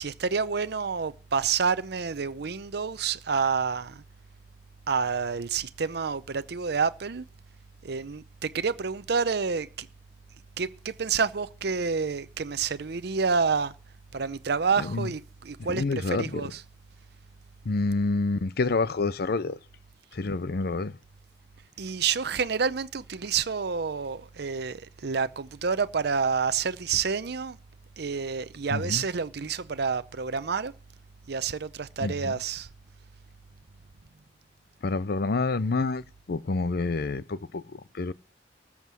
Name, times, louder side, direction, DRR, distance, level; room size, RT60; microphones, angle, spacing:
voice 1, 0.0-4.0 4.9-7.2 7.8-9.9 10.6-13.7 14.1-16.6 21.8-27.6 28.0-30.7 31.3-32.7, right 5 dB, 65° right, 0.6 m, -28 dB
voice 2, 14.8-15.1 15.6-16.5 17.6-19.6 20.1-21.0 28.7-29.0 32.0-32.4 34.8-38.1, left 3 dB, 60° left, 0.6 m, -28 dB
14.0 x 7.3 x 6.2 m
head